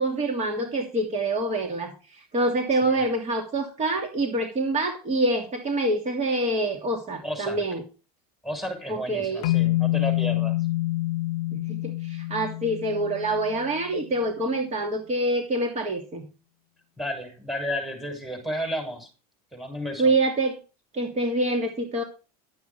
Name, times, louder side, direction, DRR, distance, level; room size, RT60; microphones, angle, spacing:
voice 1, 0.0-7.8 8.9-9.5 11.5-16.3 20.0-20.6 20.9-22.0, right 2 dB, 35° right, 4 dB, 2.9 m, -26 dB
voice 2, 7.2-7.6 8.4-10.6 17.0-19.1 19.5-20.1, equal, ahead, 4 dB, 6.5 m, -32 dB
sound 1, 9.4-13.7, left 18 dB, 75° left, 0.5 m, -26 dB
12.5 x 9.2 x 4.3 m, 0.32 s
hypercardioid pair, 100°, 20 cm